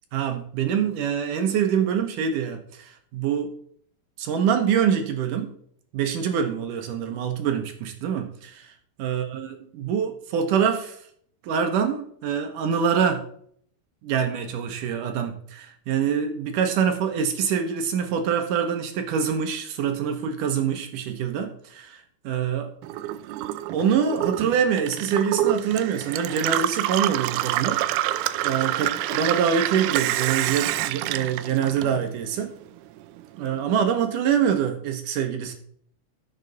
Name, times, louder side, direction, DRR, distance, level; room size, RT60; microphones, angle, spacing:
voice 1, 0.1-3.5 4.2-5.5 5.9-8.7 9.0-11.0 11.4-13.2 14.0-22.7 23.7-32.5 33.4-35.5, right 7 dB, 70° right, 6 dB, 2.3 m, -25 dB
Gurgling / Water tap faucet / Sink (filling or washing), 22.8-32.4 32.7-33.5, right 14 dB, 85° right, 2.5 m, -27 dB
14.0 x 6.9 x 4.0 m, 0.62 s
omnidirectional pair, 4.4 m